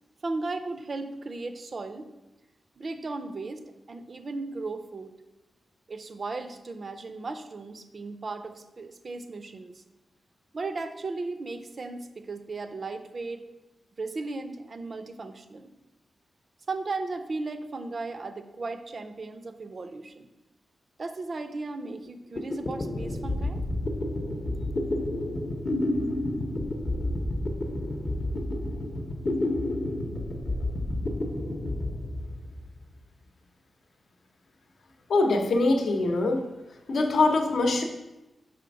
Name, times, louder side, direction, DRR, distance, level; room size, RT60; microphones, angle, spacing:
voice 1, 0.2-2.1 2.8-5.1 5.9-9.7 10.5-13.4 14.0-15.8 16.7-20.3 21.0-23.6, right 3 dB, 35° right, 9 dB, 0.4 m, -36 dB
sound 1, 22.1-22.2 22.4-32.8, left 1 dB, 35° left, 0.7 m, -30 dB
voice 2, 35.1-36.4 36.9-37.8, left 2 dB, 70° left, 4 dB, 0.8 m, -23 dB
5.6 x 3.4 x 5.2 m, 0.99 s
wide cardioid pair, 165°, 0 cm